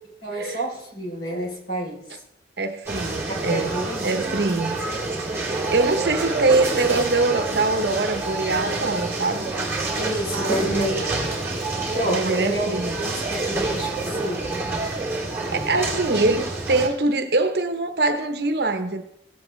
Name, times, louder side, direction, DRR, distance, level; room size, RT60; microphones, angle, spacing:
voice 1, 0.2-2.2 3.5-4.1 9.9-10.9 11.9-12.7 13.0-14.5, right 1 dB, 60° left, 3.6 m, -29 dB
voice 2, 2.6-4.8 5.7-9.5 10.3-11.1 12.1-13.0 15.5-19.0, right 3 dB, 60° right, 0.9 m, -23 dB
sound 1, 2.9-16.9, right 2 dB, 15° right, 2.3 m, -27 dB
16.5 x 7.7 x 3.2 m
head